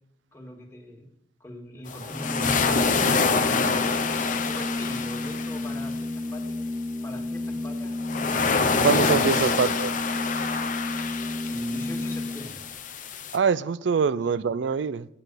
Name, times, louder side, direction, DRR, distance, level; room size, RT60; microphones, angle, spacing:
voice 1, 0.3-1.1 1.4-3.6 4.2-6.7 7.0-8.4 11.5-12.6, left 1 dB, 15° left, 2.1 m, -42 dB
sound 1, 1.9-6.0 8.0-13.4, left 4 dB, 45° left, 0.8 m, -26 dB
Organ, 2.0-12.7, left 2 dB, 10° right, 0.7 m, -32 dB
voice 2, 8.8-9.9 13.3-15.1, right 6 dB, 80° right, 0.4 m, -24 dB
9.8 x 6.1 x 6.8 m
head